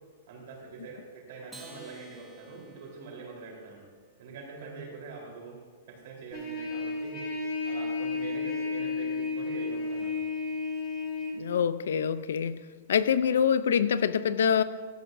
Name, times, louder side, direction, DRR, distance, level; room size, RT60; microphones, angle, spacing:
voice 1, 0.3-3.8 4.2-5.6 5.9-7.2 7.7-10.2, right 4 dB, 50° right, -2 dB, 3.9 m, -44 dB
Acoustic guitar, 1.5-4.2, right 1 dB, 5° right, 1.1 m, -52 dB
Trumpet, 6.3-11.3, left 3 dB, 25° left, 2.2 m, -32 dB
voice 2, 11.3-12.6 12.9-14.6, left 7 dB, 85° left, 14 dB, 0.5 m, -25 dB
15.5 x 13.5 x 2.7 m, 1.6 s
supercardioid pair, 180°, 0 cm